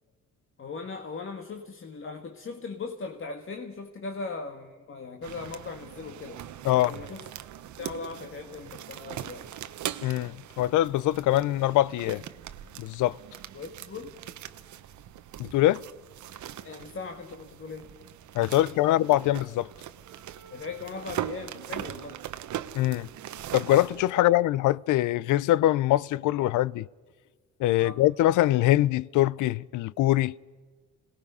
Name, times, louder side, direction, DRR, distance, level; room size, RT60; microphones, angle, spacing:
voice 1, 0.6-6.4 6.7-7.3 7.8-9.5 13.5-14.2 16.6-17.9 18.6-19.0 20.5-22.2 27.8-28.0, left 4 dB, 45° left, 1.6 m, -39 dB
sound 1, 5.2-24.1, right 11 dB, 75° right, 1.0 m, -41 dB
voice 2, 10.0-12.2 12.8-13.2 15.4-15.8 18.3-19.7 22.7-23.1 23.5-26.9 27.6-30.3, left 15 dB, 80° left, 0.5 m, -23 dB
27.0 x 18.5 x 5.5 m
cardioid pair, 90°, 30 cm